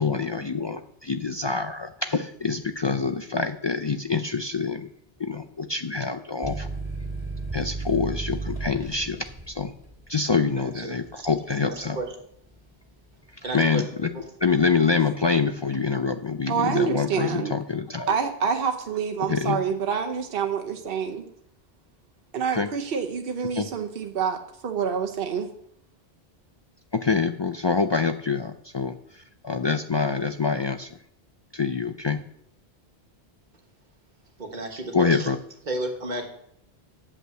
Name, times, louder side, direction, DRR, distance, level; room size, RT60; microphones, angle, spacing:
voice 1, 0.0-4.9 5.2-6.7 7.5-9.7 10.1-12.0 13.5-14.1 14.4-18.1 19.3-19.6 22.5-22.7 23.5-23.6 26.9-31.0 31.5-32.2 34.9-35.4, left 4 dB, 45° left, 8 dB, 0.3 m, -26 dB
sound 1, 6.4-13.7 14.1-14.8, right 2 dB, 20° right, 2.7 m, -35 dB
voice 2, 10.5-11.3 11.6-12.1 13.4-13.8 14.1-14.2 34.4-35.3 35.7-36.3, right 2 dB, 45° right, 2 dB, 1.6 m, -33 dB
voice 3, 16.5-17.5 18.1-21.3 22.3-25.5, right 7 dB, 65° right, 4 dB, 1.0 m, -27 dB
8.6 x 5.5 x 7.6 m, 0.72 s
omnidirectional pair, 1.1 m